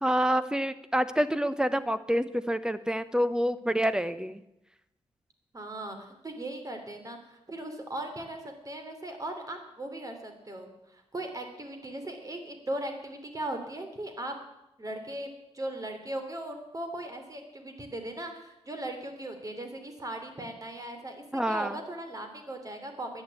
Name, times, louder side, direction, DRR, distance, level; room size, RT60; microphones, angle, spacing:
voice 1, 0.0-4.4 21.3-21.8, equal, 5° right, 13 dB, 1.0 m, -27 dB
voice 2, 5.5-6.0 6.2-8.4 8.6-14.3 14.8-15.3 15.5-23.2, right 1 dB, 30° right, 5 dB, 3.2 m, -38 dB
11.0 x 9.7 x 8.6 m, 0.86 s
cardioid pair, 75°, 11 cm